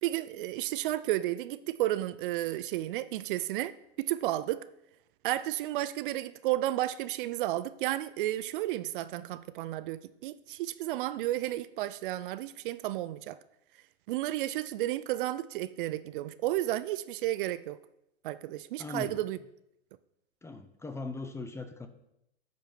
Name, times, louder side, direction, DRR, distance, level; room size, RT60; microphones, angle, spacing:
voice 1, 0.0-4.6 5.2-13.4 14.1-17.8 18.2-19.4, right 15 dB, 50° right, 0.5 m, -32 dB
voice 2, 18.8-19.2 20.4-21.9, left 3 dB, 10° left, 0.6 m, -39 dB
9.2 x 5.3 x 5.9 m
hypercardioid pair, 110°, 33 cm